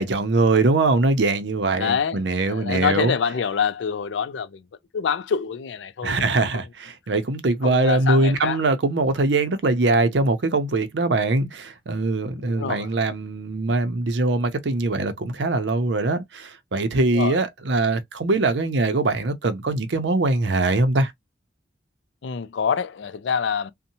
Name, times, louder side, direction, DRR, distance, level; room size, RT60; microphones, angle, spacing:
voice 1, 0.0-3.1 6.0-21.1, right 2 dB, 70° right, 0.6 m, -22 dB
voice 2, 1.8-4.7 4.9-6.3 6.5-6.6 7.6-8.6 12.3-12.9 17.1-17.4 22.2-23.7, left 6 dB, 80° left, 0.4 m, -26 dB
2.6 x 2.1 x 2.7 m
head